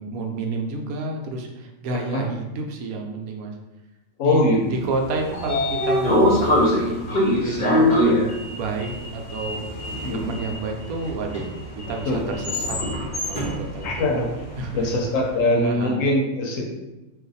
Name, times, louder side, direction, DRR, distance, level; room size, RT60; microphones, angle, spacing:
voice 1, 0.0-3.5 4.2-7.0 7.3-9.6 10.1-11.5 11.9-12.8 13.3-13.9 14.6-15.0 15.6-16.0, right 3 dB, 80° right, 1 dB, 1.0 m, -30 dB
voice 2, 4.2-4.7 10.0-10.2 12.1-12.2 13.8-14.3 14.8-16.7, left 2 dB, 70° left, 0 dB, 1.0 m, -22 dB
Sliding door, 4.9-15.1, left 1 dB, 45° left, 0.6 m, -24 dB
2.5 x 2.5 x 3.9 m, 1.0 s
omnidirectional pair, 1.5 m